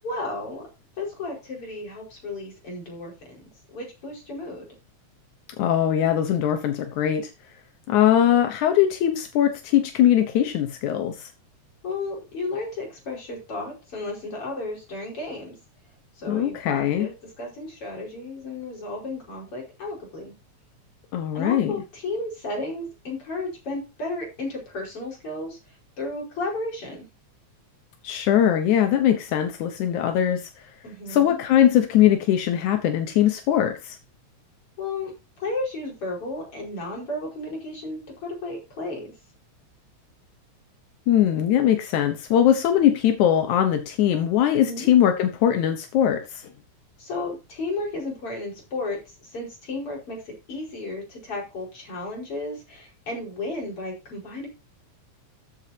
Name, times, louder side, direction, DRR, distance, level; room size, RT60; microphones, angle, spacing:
voice 1, 0.0-0.7 1.0-3.1 3.7-4.6 11.8-15.5 16.2-20.3 21.3-25.6 26.0-27.1 30.8-31.4 34.8-35.1 35.4-39.1 44.5-44.9 47.0-54.5, left 2 dB, 50° left, 5.9 m, -33 dB
voice 2, 5.6-7.3 7.9-11.3 16.3-17.1 21.1-21.8 28.0-30.5 31.1-34.0 41.1-46.4, left 10 dB, 85° left, 2.5 m, -21 dB
13.5 x 8.2 x 2.8 m
omnidirectional pair, 3.3 m